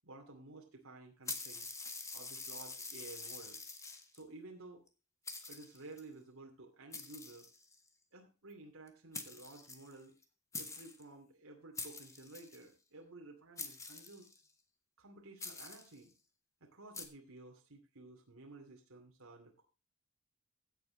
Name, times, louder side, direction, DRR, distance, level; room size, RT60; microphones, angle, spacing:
voice 1, 0.0-1.7 2.1-3.6 4.1-4.9 5.5-7.5 8.1-10.1 10.5-14.3 15.0-16.1 16.6-19.6, right 2 dB, 70° right, 1 dB, 2.6 m, -53 dB
sound 1, 1.3-4.2 4.9-5.0 5.3-6.0 6.9-7.9 8.9-9.0 9.1-10.2 10.5-11.0 11.8-12.6 13.6-14.5 15.4-16.0 16.9-17.1, left 4 dB, 15° left, 1.6 m, -46 dB
16.0 x 8.4 x 3.9 m, 0.32 s
head